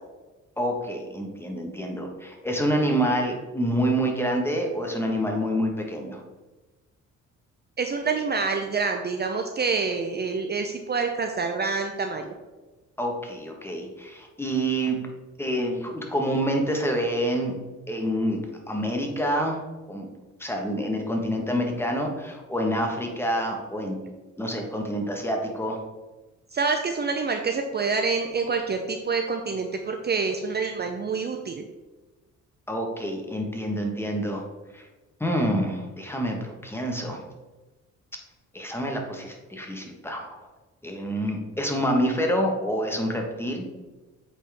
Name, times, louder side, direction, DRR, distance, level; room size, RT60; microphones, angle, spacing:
voice 1, 0.6-6.2 13.0-15.0 15.4-17.6 17.9-18.4 18.7-19.6 19.9-20.1 20.4-23.9 24.4-25.8 32.7-34.4 34.7-34.8 35.2-37.2 38.5-40.5 40.8-43.6, equal, 10° left, 2 dB, 1.4 m, -27 dB
voice 2, 7.8-12.3 26.5-31.7, right 4 dB, 35° right, 5 dB, 0.6 m, -27 dB
8.4 x 4.2 x 3.5 m, 1.2 s
cardioid pair, 90°, 30 cm